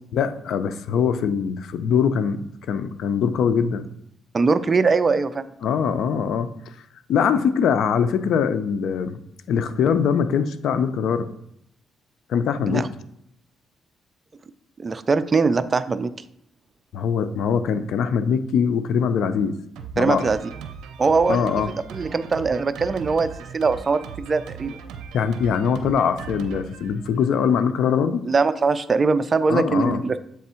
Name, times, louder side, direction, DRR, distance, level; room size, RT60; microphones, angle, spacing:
voice 1, 0.1-3.9 5.6-6.7 7.1-9.2 9.5-11.3 12.3-12.9 16.9-19.5 19.9-20.3 21.3-21.7 25.1-28.2 29.5-30.0, left 7 dB, 75° left, 12 dB, 0.4 m, -22 dB
voice 2, 4.3-5.5 12.7-12.9 14.8-16.1 20.0-20.4 21.0-21.5 21.9-24.8 28.2-30.2, right 4 dB, 35° right, 12 dB, 0.4 m, -21 dB
Drum kit, 19.8-27.6, right 7 dB, 90° right, 0.5 m, -39 dB
7.5 x 3.4 x 4.3 m, 0.74 s
cardioid pair, 90°, 0 cm